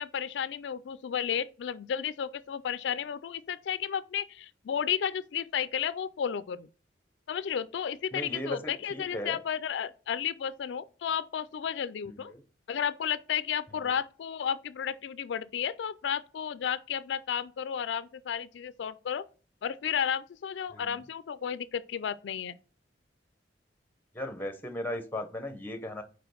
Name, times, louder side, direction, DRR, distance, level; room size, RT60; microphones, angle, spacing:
voice 1, 0.0-6.7 7.3-12.3 12.7-19.3 19.6-22.6, left 8 dB, 70° left, 0.4 m, -33 dB
voice 2, 8.1-9.4 12.1-12.4 13.8-13.9 20.7-21.0 24.1-26.0, left 1 dB, 10° left, 0.8 m, -37 dB
5.0 x 4.7 x 6.2 m
head